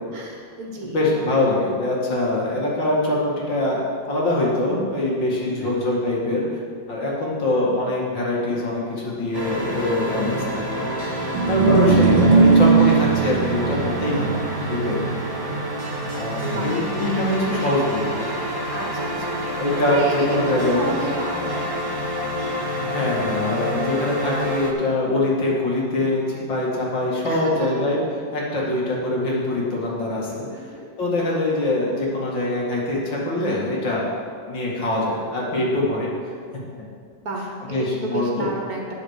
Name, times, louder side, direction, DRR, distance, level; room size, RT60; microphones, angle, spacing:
voice 1, 0.1-1.2 5.4-5.7 16.4-16.7 18.7-19.5 19.9-21.7 27.2-27.8 30.5-30.9 37.1-38.9, right 1 dB, 55° right, 0 dB, 1.7 m, -31 dB
voice 2, 0.9-6.4 6.9-10.8 11.5-14.4 14.7-15.0 16.1-18.3 19.6-20.9 22.9-28.0 28.3-30.5 31.0-34.1 34.5-36.1 37.7-38.5, left 1 dB, 75° left, -4 dB, 2.8 m, -23 dB
sound 1, 9.3-24.7, equal, 15° right, 0.8 m, -28 dB
sound 2, 11.2-17.6, right 4 dB, 85° right, 1.6 m, -20 dB
9.6 x 6.4 x 6.6 m, 2.1 s
omnidirectional pair, 2.1 m